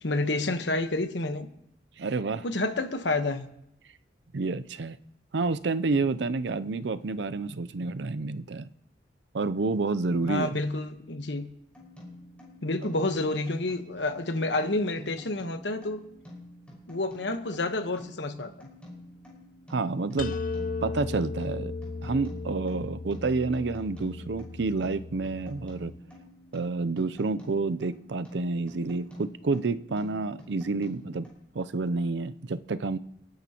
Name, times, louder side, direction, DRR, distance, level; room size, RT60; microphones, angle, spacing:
voice 1, 0.0-1.5 2.4-3.5 10.2-11.5 12.6-16.0 16.9-18.7, left 2 dB, 85° left, 8 dB, 1.2 m, -29 dB
voice 2, 2.0-2.4 4.3-5.0 5.3-8.7 9.3-10.6 19.7-20.3 20.8-21.7 22.0-25.9 26.5-31.3 31.5-33.0, right 3 dB, 80° right, 13 dB, 0.5 m, -29 dB
sound 1, 11.7-31.3, left 1 dB, 5° left, 5.4 m, -48 dB
sound 2, 20.2-26.0, left 3 dB, 50° left, 0.6 m, -36 dB
29.5 x 10.5 x 3.0 m, 0.77 s
head